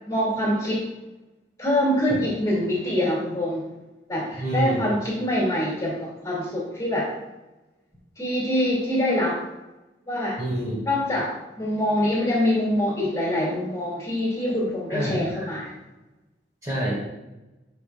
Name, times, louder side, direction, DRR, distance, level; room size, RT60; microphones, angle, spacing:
voice 1, 0.0-0.8 1.6-3.7 4.1-7.1 8.2-9.4 10.1-10.4 10.8-15.7, left 1 dB, 15° left, -4 dB, 2.3 m, -25 dB
voice 2, 4.4-4.8 10.4-10.8 14.9-15.5 16.6-16.9, right 1 dB, 20° right, -5 dB, 1.8 m, -27 dB
13.0 x 5.2 x 2.3 m, 1.0 s
head